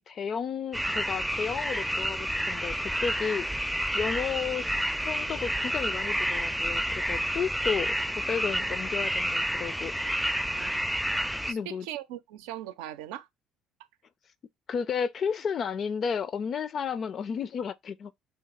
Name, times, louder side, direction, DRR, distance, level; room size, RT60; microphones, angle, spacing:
voice 1, 0.0-3.5 3.9-4.8 5.0-8.0 8.3-10.1 11.5-11.9 14.7-18.1, left 6 dB, 50° left, 0.5 m, -32 dB
sound 1, 0.7-11.5, equal, ahead, 0.5 m, -30 dB
voice 2, 11.5-13.3, right 13 dB, 75° right, 0.5 m, -40 dB
3.2 x 3.2 x 4.8 m
hypercardioid pair, 60°, 0 cm